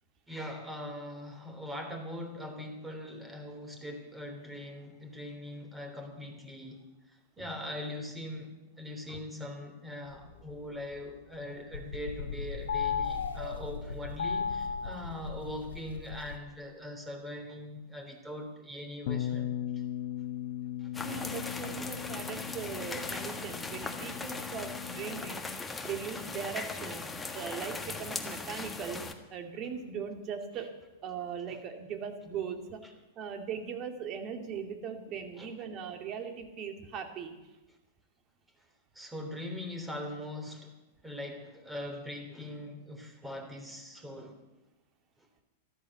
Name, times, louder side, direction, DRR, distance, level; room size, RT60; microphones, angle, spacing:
voice 1, 0.3-19.8 20.8-21.0 21.8-21.9 22.5-22.6 26.1-26.2 31.5-31.6 35.4-35.5 38.6-38.7 38.9-40.8 41.0-44.4, left 1 dB, 10° right, 4 dB, 3.3 m, -42 dB
sound 1, 10.1-11.4 11.6-16.4, left 6 dB, 75° left, 1.2 m, -36 dB
Bass guitar, 19.1-25.3, left 11 dB, 55° left, 1.3 m, -38 dB
sound 2, 20.9-29.1, left 3 dB, 10° left, 1.5 m, -39 dB
voice 2, 21.0-25.5 25.8-27.1 27.3-29.0 29.3-30.7 31.0-32.8 33.2-37.4, right 6 dB, 35° right, 5 dB, 2.4 m, -39 dB
13.5 x 12.5 x 8.1 m, 1.0 s
hypercardioid pair, 100°, 0 cm